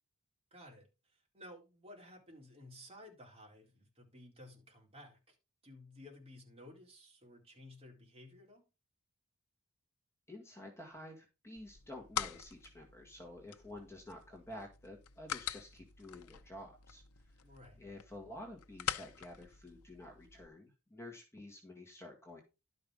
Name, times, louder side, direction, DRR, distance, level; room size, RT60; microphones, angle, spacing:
voice 1, 0.5-5.4 5.6-8.7 17.4-17.8, left 1 dB, 25° right, 4.1 m, -55 dB
voice 2, 10.3-17.0 17.8-22.4, left 1 dB, 10° left, 1.8 m, -50 dB
sound 1, 11.6-20.5, left 9 dB, 75° left, 0.7 m, -45 dB
12.0 x 5.4 x 4.9 m
head